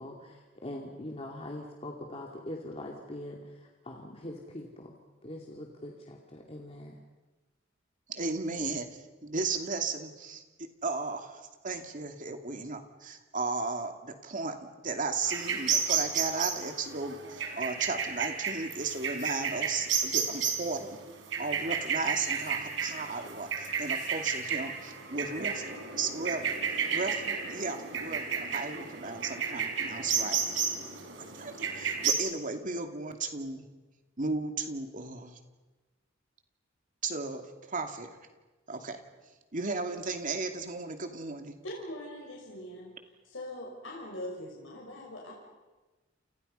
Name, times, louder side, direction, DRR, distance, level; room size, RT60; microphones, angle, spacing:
voice 1, 0.0-4.9 5.2-7.0, left 1 dB, 30° left, 0 dB, 2.6 m, -42 dB
voice 2, 8.1-21.0 21.4-26.5 26.9-30.4 31.3-33.6 34.2-35.4 37.0-38.1 38.7-39.0 39.5-41.5, right 3 dB, 45° right, 5 dB, 2.5 m, -35 dB
sound 1, 15.2-32.1, right 6 dB, 70° right, 4.2 m, -32 dB
voice 3, 41.6-42.9 43.2-45.3, left 1 dB, 80° left, -2 dB, 5.7 m, -41 dB
29.5 x 29.0 x 5.6 m, 1.2 s
head